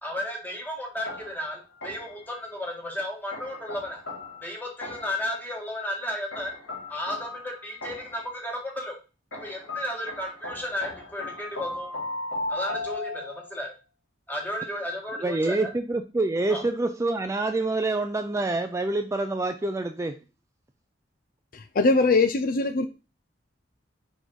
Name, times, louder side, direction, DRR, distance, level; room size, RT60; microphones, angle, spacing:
voice 1, 0.0-4.0 4.4-6.5 6.9-9.0 9.4-12.0 12.5-13.7 14.3-15.7 16.5-16.6, left 1 dB, 10° left, 1.6 m, -34 dB
sound 1, 1.1-2.3 3.3-5.3 6.3-8.3 9.3-13.6, left 2 dB, 85° left, 2.0 m, -37 dB
voice 2, 15.2-20.2, right 2 dB, 15° right, 0.4 m, -26 dB
voice 3, 21.5-22.9, left 3 dB, 50° left, 0.5 m, -22 dB
5.1 x 4.2 x 4.6 m
head